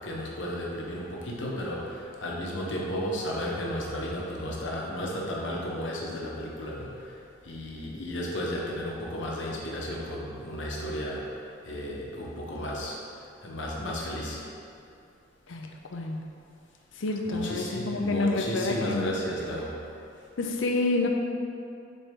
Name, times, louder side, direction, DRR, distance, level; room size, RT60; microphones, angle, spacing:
voice 1, 0.0-7.1 7.4-12.9 13.4-14.4 17.3-19.8, equal, 70° left, -3 dB, 1.1 m, -33 dB
voice 2, 15.5-16.2 17.0-19.2 20.4-21.1, left 2 dB, 85° left, 2 dB, 0.6 m, -28 dB
7.0 x 4.2 x 3.6 m, 2.5 s
head